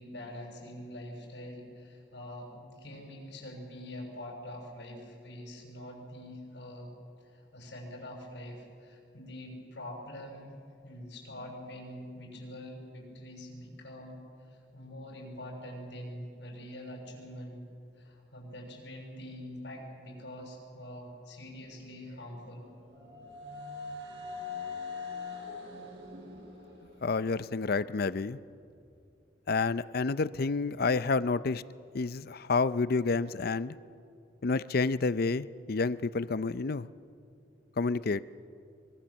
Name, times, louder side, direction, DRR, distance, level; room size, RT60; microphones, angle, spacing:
voice 1, 0.0-6.9 7.2-10.6 10.8-17.6 17.9-22.7, left 1 dB, 85° left, 1 dB, 6.6 m, -44 dB
sound 1, 22.1-28.0, left 4 dB, 75° right, 6.7 m, -43 dB
voice 2, 27.0-28.4 29.5-31.6 31.9-33.8 34.4-36.9 37.8-38.2, left 4 dB, 60° left, 16 dB, 0.6 m, -29 dB
25.0 x 22.5 x 7.2 m, 2.5 s
head